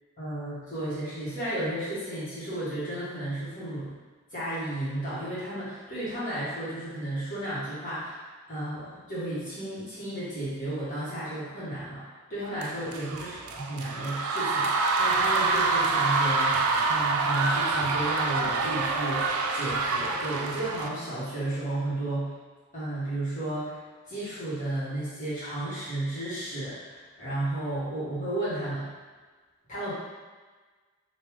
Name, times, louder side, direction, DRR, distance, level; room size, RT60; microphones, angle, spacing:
voice 1, 0.2-3.9 4.3-8.2 8.5-12.0 12.3-22.3 22.7-23.8 24.1-28.9 29.7-29.9, right 1 dB, 35° left, -11 dB, 1.5 m, -33 dB
sound 1, 12.6-20.9, right 3 dB, 90° right, 0.3 m, -26 dB
3.6 x 2.6 x 3.1 m, 1.4 s
head